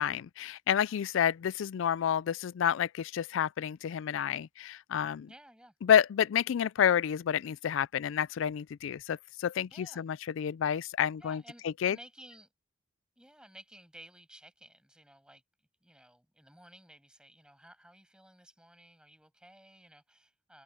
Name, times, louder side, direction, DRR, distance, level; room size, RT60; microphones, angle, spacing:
voice 1, 0.0-5.3 5.8-11.4 11.8-12.0, left 9 dB, 70° left, 0.3 m, -29 dB
voice 2, 5.3-5.7 9.7-10.1 11.2-12.5 13.2-15.4 15.8-20.6, right 1 dB, 5° right, 7.7 m, -55 dB
head